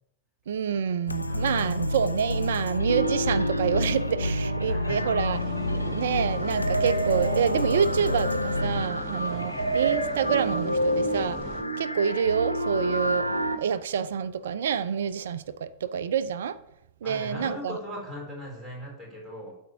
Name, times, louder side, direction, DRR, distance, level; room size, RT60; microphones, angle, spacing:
voice 1, 0.5-5.4 5.7-11.4 11.8-13.3 13.6-16.6 17.0-17.7, right 7 dB, 60° right, 0.4 m, -27 dB
sound 1, 1.1-8.9, left 1 dB, 85° left, 0.5 m, -29 dB
voice 2, 1.3-1.6 4.6-5.2 6.0-6.2 9.3-9.7 17.0-19.5, equal, ahead, 4.6 m, -39 dB
sound 2, 2.9-13.6, right 1 dB, 90° right, 0.8 m, -29 dB
sound 3, 5.3-11.6, right 3 dB, 35° right, 2.1 m, -40 dB
12.0 x 4.4 x 6.7 m
figure-of-eight pair, 90°, 0 cm